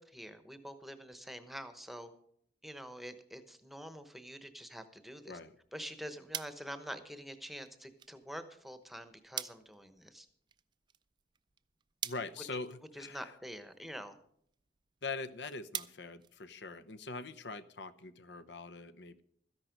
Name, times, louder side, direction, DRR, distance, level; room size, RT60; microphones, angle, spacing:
voice 1, 0.0-2.1 2.6-5.4 5.7-10.3 13.0-14.2, equal, ahead, 10 dB, 1.0 m, -46 dB
sound 1, 5.6-17.1, right 9 dB, 25° right, 0.4 m, -48 dB
voice 2, 12.0-13.3 15.0-19.2, left 3 dB, 70° left, 14 dB, 0.8 m, -43 dB
13.5 x 10.5 x 5.2 m, 0.68 s
head